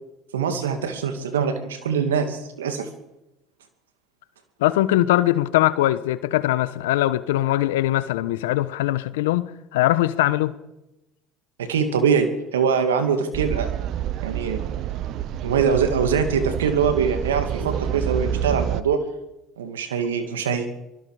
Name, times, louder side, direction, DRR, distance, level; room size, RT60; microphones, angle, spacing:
voice 1, 0.3-2.9 11.6-13.7 14.2-14.7 15.4-19.0 19.6-20.7, right 6 dB, 90° right, 2.5 m, -23 dB
voice 2, 4.6-10.5 17.6-17.7, left 15 dB, 80° left, 1.1 m, -21 dB
sound 1, 13.3-18.8, right 10 dB, 60° right, 0.9 m, -28 dB
24.0 x 22.0 x 5.1 m
hypercardioid pair, 70°, 0 cm